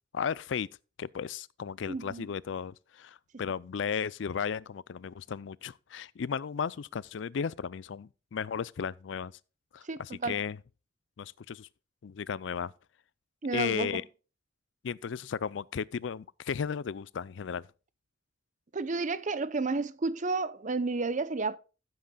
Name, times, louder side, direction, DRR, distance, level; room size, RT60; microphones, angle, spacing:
voice 1, 0.1-0.7 1.0-9.3 9.7-10.6 11.2-11.7 12.0-12.7 13.5-14.0 14.8-17.7, left 6 dB, 70° left, 0.4 m, -35 dB
voice 2, 1.9-2.3 9.8-10.4 13.4-14.0 18.7-21.6, right 3 dB, 40° right, 0.7 m, -31 dB
15.0 x 8.0 x 2.3 m
head